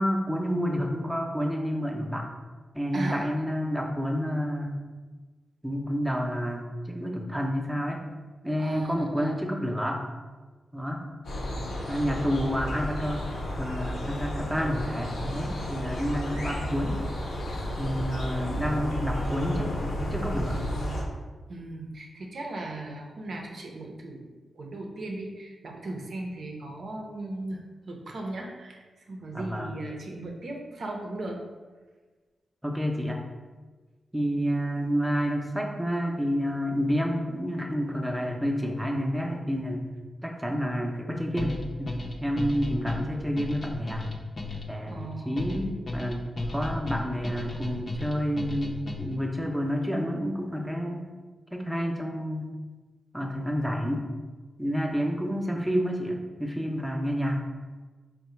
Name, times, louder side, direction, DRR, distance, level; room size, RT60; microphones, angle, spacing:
voice 1, 0.0-2.3 2.7-4.8 5.6-8.1 8.4-10.0 10.7-11.0 11.9-13.3 13.6-17.0 17.8-20.6 29.3-29.7 32.6-33.2 34.1-39.9 40.2-44.1 44.7-51.1 51.5-52.5 53.1-54.1 54.6-57.4, equal, 10° right, 1 dB, 0.6 m, -29 dB
voice 2, 2.9-3.3 8.6-9.3 11.9-12.0 21.5-27.6 27.9-31.4 44.9-45.5, right 2 dB, 65° right, 1 dB, 0.6 m, -37 dB
sound 1, 11.2-21.0, equal, 85° left, 0.8 m, -32 dB
sound 2, 41.4-49.3, left 2 dB, 45° left, 0.6 m, -35 dB
3.7 x 2.2 x 4.3 m, 1.3 s
cardioid pair, 65°, 0 cm